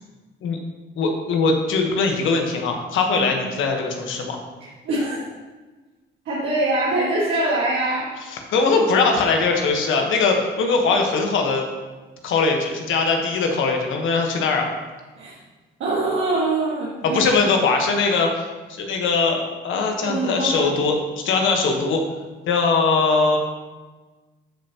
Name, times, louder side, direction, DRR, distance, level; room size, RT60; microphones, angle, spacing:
voice 1, 1.0-4.4 8.3-11.7 12.2-14.7 17.0-21.0 21.2-22.0 22.5-23.4, left 4 dB, 80° left, 2 dB, 1.3 m, -21 dB
voice 2, 4.8-5.3 6.3-8.1 15.2-15.4 15.8-17.4 20.0-20.7, right 2 dB, 75° right, -7 dB, 1.8 m, -23 dB
12.5 x 5.5 x 3.0 m, 1.3 s
cardioid pair, 90°, 20 cm